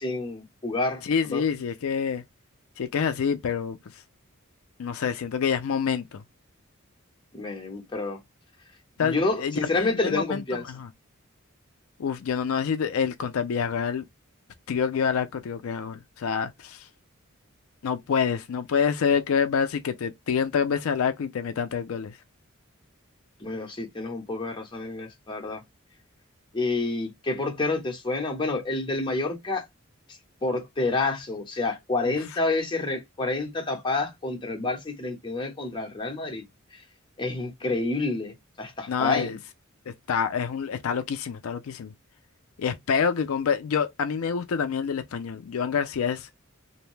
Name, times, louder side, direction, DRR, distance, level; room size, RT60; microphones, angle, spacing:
voice 1, 0.0-1.5 7.3-8.2 9.0-10.6 23.4-25.6 26.5-29.6 30.4-36.4 36.7-36.8 37.2-39.4, left 3 dB, 20° left, 0.9 m, -29 dB
voice 2, 1.0-2.2 2.8-4.0 4.8-6.2 9.0-10.9 12.0-14.0 14.7-16.9 17.8-22.2 32.1-32.2 38.9-39.4 39.9-41.9 42.6-46.3, left 6 dB, 85° left, 0.4 m, -27 dB
2.6 x 2.1 x 3.1 m
head